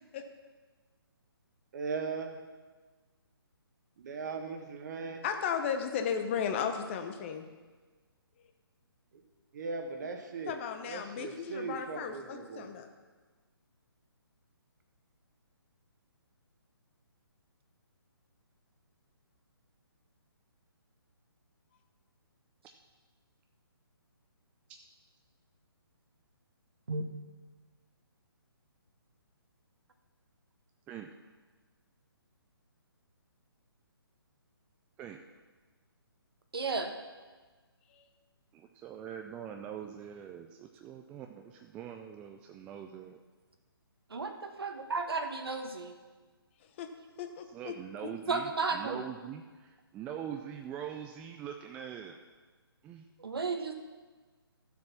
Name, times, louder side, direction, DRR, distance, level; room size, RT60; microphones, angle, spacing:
voice 1, 1.7-2.4 4.0-5.2 9.1-9.2 9.5-12.8, right 4 dB, 45° right, 4 dB, 1.6 m, -39 dB
voice 2, 5.2-7.5 10.5-12.9 37.9-38.1 46.8-46.9 47.2-47.7, left 7 dB, 30° left, 6 dB, 1.0 m, -35 dB
voice 3, 36.5-36.9 44.1-45.9 48.3-49.0 53.2-53.8, right 4 dB, 70° right, 5 dB, 1.5 m, -33 dB
voice 4, 38.5-43.2 47.5-52.2 52.8-53.1, right 9 dB, 10° right, 4 dB, 0.3 m, -43 dB
13.0 x 7.5 x 5.9 m, 1.4 s
figure-of-eight pair, 140°, 13 cm